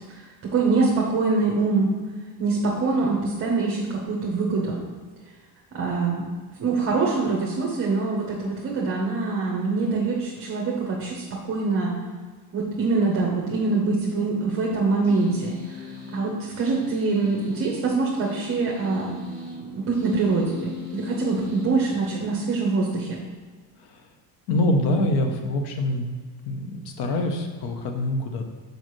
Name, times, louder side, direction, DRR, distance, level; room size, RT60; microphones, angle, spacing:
voice 1, 0.0-1.9 2.4-4.8 5.7-6.2 6.6-12.0 12.5-15.8 16.1-19.1 19.6-23.2, right 3 dB, 35° right, -2 dB, 0.9 m, -24 dB
sound 1, 15.0-22.4, left 4 dB, 5° left, 1.6 m, -39 dB
voice 2, 23.8-24.1 24.5-26.1 26.4-28.4, left 1 dB, 75° left, 5 dB, 0.9 m, -25 dB
6.5 x 4.9 x 3.1 m, 1.5 s
cardioid pair, 160°, 40 cm